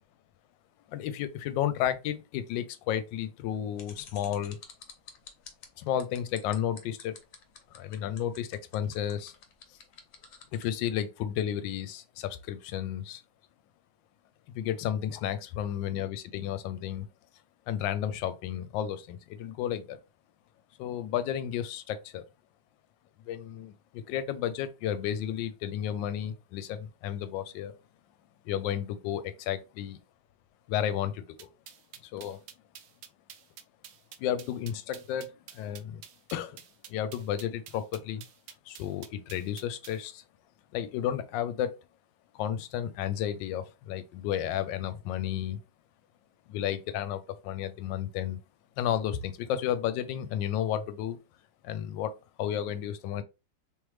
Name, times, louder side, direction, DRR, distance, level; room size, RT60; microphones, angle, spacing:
voice 1, 0.9-4.6 5.8-7.2 7.7-9.3 10.5-13.2 14.5-17.1 17.7-20.0 20.8-22.3 23.3-27.7 28.4-29.2 29.5-30.0 30.7-31.5 32.0-32.4 34.2-36.0 36.3-36.6 36.9-38.2 38.7-40.2 40.7-41.7 42.3-45.6 46.5-48.4 48.8-51.2 51.6-52.1 52.4-53.2, left 10 dB, 75° left, 1.2 m, -32 dB
sound 1, 3.8-10.7, left 7 dB, 55° left, 1.0 m, -49 dB
sound 2, 31.4-40.0, right 9 dB, 80° right, 0.8 m, -49 dB
3.6 x 3.1 x 3.2 m
omnidirectional pair, 2.1 m